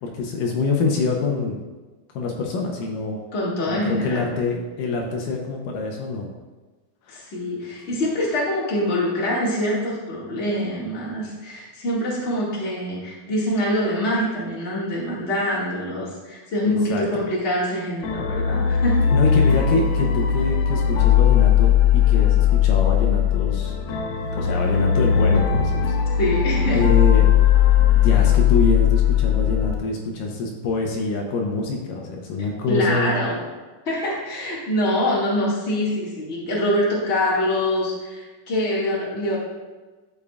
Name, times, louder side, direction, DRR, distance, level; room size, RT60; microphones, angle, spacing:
voice 1, 0.0-1.6 2.1-3.2 3.7-6.3 7.1-7.2 16.6-17.2 19.1-23.7 24.1-26.0 26.8-27.3 27.9-33.2, left 3 dB, 70° left, 1 dB, 2.3 m, -25 dB
voice 2, 3.3-4.3 7.1-19.1 26.2-26.8 32.7-33.4 33.8-39.4, left 1 dB, 30° left, -5 dB, 1.2 m, -24 dB
sound 1, 18.0-29.7, left 9 dB, 90° left, 3.1 m, -18 dB
12.0 x 6.9 x 2.4 m, 1.3 s
omnidirectional pair, 4.4 m